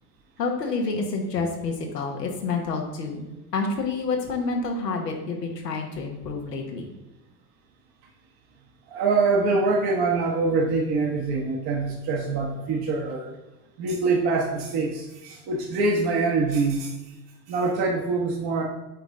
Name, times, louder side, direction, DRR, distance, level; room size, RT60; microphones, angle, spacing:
voice 1, 0.4-6.9, left 4 dB, 85° left, 2 dB, 1.2 m, -28 dB
voice 2, 8.9-13.3 13.8-16.9 17.5-18.6, right 3 dB, 55° right, -2 dB, 1.2 m, -24 dB
8.7 x 4.1 x 3.7 m, 1.0 s
hypercardioid pair, 65°, 47 cm